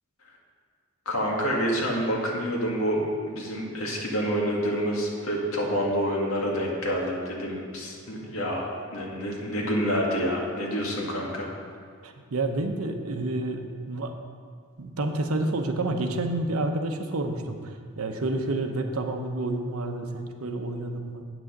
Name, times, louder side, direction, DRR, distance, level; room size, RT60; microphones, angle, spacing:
voice 1, 1.1-11.5, equal, 80° left, -2 dB, 1.9 m, -28 dB
voice 2, 12.0-14.2 14.8-21.2, right 2 dB, 85° right, 5 dB, 0.8 m, -29 dB
8.3 x 6.2 x 6.5 m, 2.1 s
head